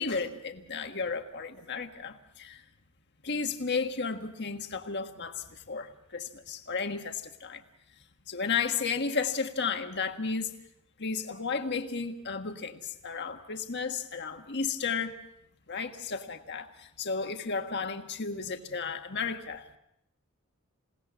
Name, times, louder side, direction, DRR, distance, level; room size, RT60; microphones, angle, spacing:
voice 1, 0.0-2.6 3.2-7.6 8.3-10.5 11.0-15.2 15.7-19.8, left 5 dB, 50° left, 6 dB, 1.6 m, -33 dB
28.0 x 18.0 x 6.3 m, 0.77 s
head